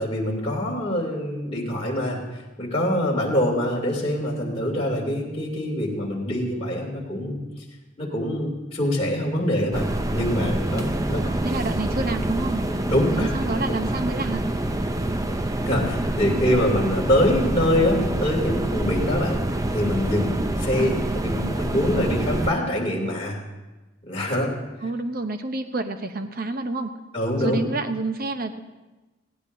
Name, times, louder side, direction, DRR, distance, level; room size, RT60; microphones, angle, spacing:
voice 1, 0.0-2.2 2.6-7.4 8.0-11.2 12.9-13.3 13.7-13.8 15.6-19.4 19.7-21.0 21.2-23.4 24.0-24.5 27.1-27.7, left 1 dB, 30° left, -3 dB, 2.8 m, -24 dB
sound 1, 9.7-22.5, right 1 dB, 15° right, 0.5 m, -26 dB
voice 2, 11.2-12.6 13.1-14.4 20.8-21.1 24.8-26.9 27.4-28.6, right 2 dB, 45° right, 7 dB, 0.8 m, -28 dB
17.5 x 16.5 x 2.7 m, 1.1 s
head